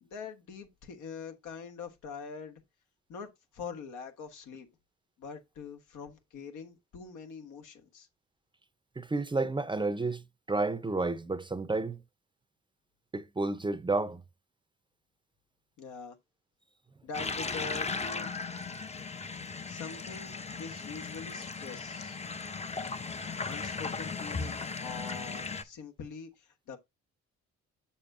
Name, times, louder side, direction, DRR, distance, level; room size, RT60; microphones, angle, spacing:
voice 1, 0.0-2.6 3.1-4.7 5.2-8.1 15.8-16.2 17.0-18.3 19.3-22.2 23.5-26.8, left 5 dB, 80° left, 1.3 m, -44 dB
voice 2, 9.0-10.2 10.5-12.0 13.1-14.2, right 3 dB, 15° right, 0.6 m, -31 dB
sound 1, 17.1-25.6, left 4 dB, 20° left, 0.6 m, -37 dB
7.0 x 6.7 x 2.6 m
cardioid pair, 90°, 30 cm